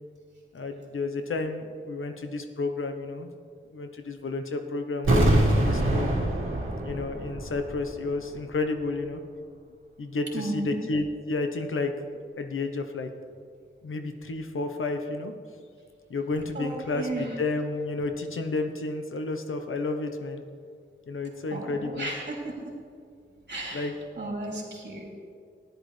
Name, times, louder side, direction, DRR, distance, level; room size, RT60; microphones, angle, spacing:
voice 1, 0.5-3.3 3.7-6.1 6.8-9.2 10.0-11.9 12.4-13.1 13.8-15.3 16.1-20.4 21.1-22.1 23.7-23.9, left 3 dB, 90° left, 6 dB, 0.9 m, -31 dB
sound 1, 5.0-7.9 8.2-8.3, right 1 dB, 80° right, 1.6 m, -24 dB
voice 2, 10.3-10.8 16.5-17.3 21.5-22.5 23.5-23.9 24.2-25.2, right 2 dB, 60° right, -2 dB, 3.0 m, -34 dB
14.5 x 10.5 x 3.3 m, 2.3 s
wide cardioid pair, 85°, 20 cm